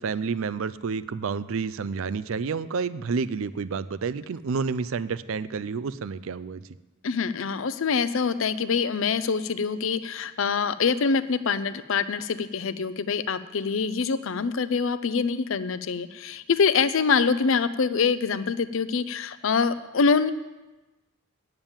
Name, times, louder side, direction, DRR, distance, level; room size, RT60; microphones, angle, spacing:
voice 1, 0.0-6.6, right 5 dB, 70° right, 15 dB, 0.4 m, -29 dB
voice 2, 7.0-20.3, left 5 dB, 65° left, 14 dB, 0.5 m, -25 dB
8.9 x 7.2 x 8.9 m, 1.1 s
head